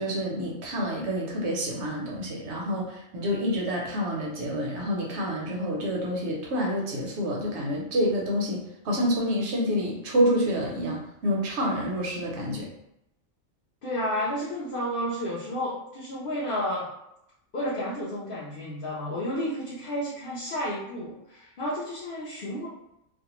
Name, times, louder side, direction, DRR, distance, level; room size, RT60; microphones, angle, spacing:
voice 1, 0.0-12.7, equal, 65° right, -2 dB, 0.8 m, -28 dB
voice 2, 13.8-16.9 17.5-22.7, equal, 55° left, -8 dB, 0.6 m, -31 dB
2.4 x 2.1 x 2.9 m, 0.82 s
omnidirectional pair, 1.4 m